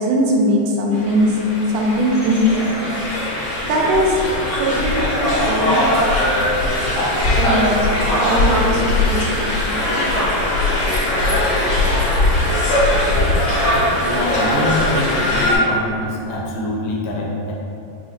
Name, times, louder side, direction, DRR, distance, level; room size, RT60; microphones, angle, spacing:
voice 1, 0.0-1.4 1.7-3.1 3.7-4.3 4.6-6.5 7.4-9.8, equal, 80° right, -1 dB, 1.9 m, -20 dB
sound 1, 0.9-15.6, left 1 dB, 50° left, 1.8 m, -19 dB
voice 2, 14.0-17.5, left 1 dB, 90° left, -2 dB, 2.1 m, -24 dB
5.6 x 2.7 x 2.8 m, 2.6 s
omnidirectional pair, 3.3 m